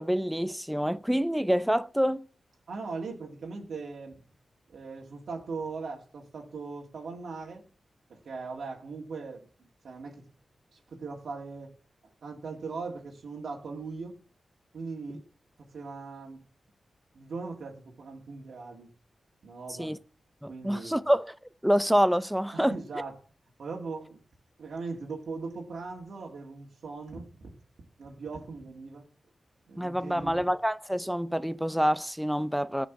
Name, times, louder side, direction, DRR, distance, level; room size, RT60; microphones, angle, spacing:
voice 1, 0.0-2.2 19.8-20.0 20.4-21.3 21.6-22.7 29.8-32.9, equal, ahead, 0.4 m, -27 dB
voice 2, 2.7-4.2 4.7-7.6 8.1-9.5 9.8-10.2 10.7-11.7 12.0-14.2 14.7-15.2 15.6-16.4 17.1-18.9 19.4-20.0 20.5-21.0 22.5-23.2 23.6-24.2 24.6-27.5 28.0-29.0 29.7-30.5, right 4 dB, 75° right, 2.1 m, -39 dB
13.5 x 5.2 x 8.2 m
wide cardioid pair, 110°, 0 cm